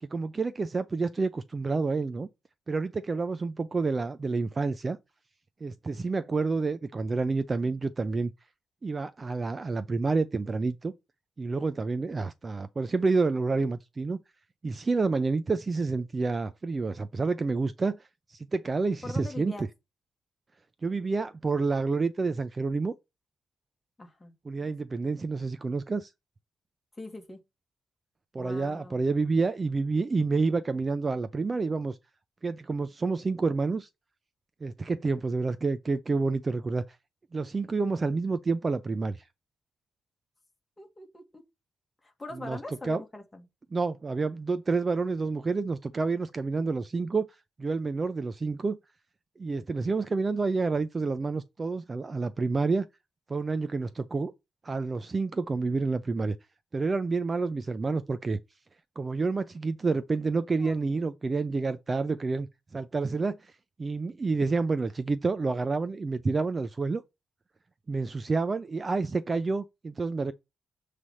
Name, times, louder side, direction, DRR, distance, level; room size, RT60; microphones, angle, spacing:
voice 1, 0.0-2.3 2.7-5.0 5.6-8.3 8.8-10.9 11.4-14.2 14.6-18.0 18.3-19.7 20.8-22.9 24.5-26.1 28.3-32.0 32.4-33.9 34.6-36.8 37.3-39.2 42.3-42.6 42.8-43.0 43.7-47.3 47.6-48.8 49.4-52.9 53.3-54.3 54.6-56.4 56.7-58.4 59.0-62.5 62.7-63.4 63.8-67.0 67.9-70.3, right 4 dB, 30° right, 0.4 m, -29 dB
voice 2, 19.0-19.6 24.0-24.3 24.6-24.7 27.0-27.4 28.3-29.0 40.8-41.4 42.0-43.5 57.8-58.0 60.6-61.0, left 2 dB, 15° left, 1.7 m, -43 dB
7.3 x 3.3 x 5.5 m
cardioid pair, 125°, 0 cm